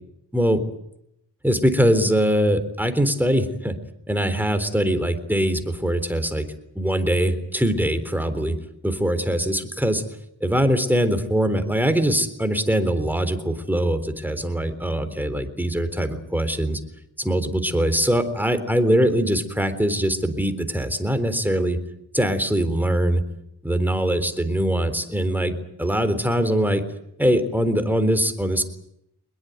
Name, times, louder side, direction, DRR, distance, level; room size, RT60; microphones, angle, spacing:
voice 1, 0.3-0.6 1.4-3.7 4.1-6.4 6.8-8.6 8.8-10.0 10.4-16.8 17.2-21.8 22.1-23.2 23.6-26.8 27.2-28.6, equal, 5° right, 9 dB, 3.8 m, -22 dB
23.0 x 21.5 x 9.2 m, 0.79 s
wide cardioid pair, 70°, 44 cm